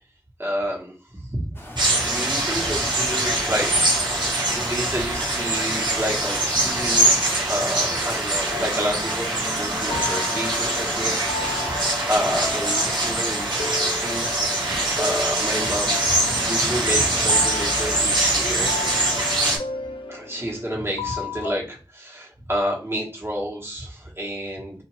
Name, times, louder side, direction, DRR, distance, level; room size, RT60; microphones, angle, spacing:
voice 1, 0.4-1.5 2.0-14.6 15.0-19.0 20.1-24.8, equal, 30° right, -3 dB, 1.4 m, -30 dB
sound 1, 1.5-7.2, left 1 dB, 30° left, 0.9 m, -39 dB
sound 2, 1.8-19.6, right 1 dB, 65° right, 1.2 m, -23 dB
sound 3, 8.4-21.6, left 4 dB, 85° left, 0.4 m, -34 dB
2.7 x 2.5 x 3.0 m, 0.35 s
wide cardioid pair, 55°, 8 cm